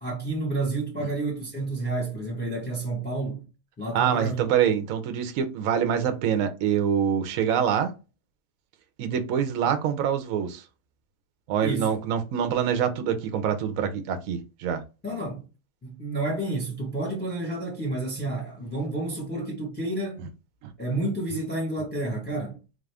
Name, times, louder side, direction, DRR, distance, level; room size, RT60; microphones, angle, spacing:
voice 1, 0.0-3.5 3.8-4.4 11.6-11.9 15.0-15.4 15.8-20.3 20.8-22.6, right 2 dB, 5° left, 0.8 m, -30 dB
voice 2, 3.9-7.9 9.0-10.6 11.5-14.8 20.6-20.7, right 8 dB, 65° right, 1.0 m, -25 dB
4.1 x 2.4 x 3.3 m
omnidirectional pair, 1.9 m